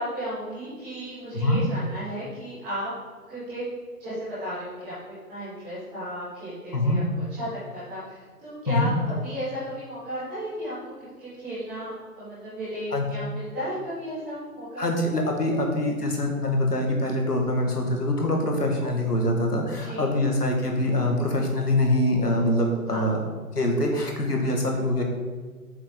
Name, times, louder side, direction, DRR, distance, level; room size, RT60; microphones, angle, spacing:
voice 1, 0.0-2.9 3.3-3.6 4.0-8.9 9.2-10.7 11.2-14.9 19.8-20.1 22.9-23.1, equal, 5° right, -14 dB, 0.6 m, -34 dB
voice 2, 14.8-23.2 23.5-25.0, left 1 dB, 90° left, 1 dB, 1.6 m, -24 dB
7.1 x 5.1 x 3.6 m, 1.5 s
figure-of-eight pair, 140°, 46 cm